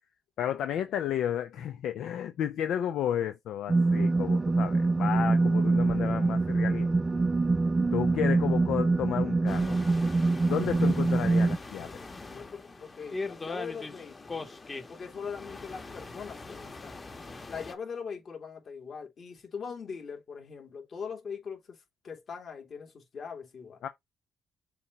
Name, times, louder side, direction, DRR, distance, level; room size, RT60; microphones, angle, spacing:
voice 1, 0.4-6.9 7.9-9.7 10.5-12.0 23.8-23.9, left 10 dB, 80° left, 0.6 m, -32 dB
sound 1, 3.7-11.6, right 3 dB, 25° right, 0.5 m, -25 dB
sound 2, 9.5-17.7, left 3 dB, 30° left, 1.3 m, -41 dB
voice 2, 12.3-14.4 14.9-17.0 17.5-21.8 22.0-23.9, left 6 dB, 55° left, 2.9 m, -41 dB
7.0 x 3.0 x 4.7 m
cardioid pair, 90°, 0 cm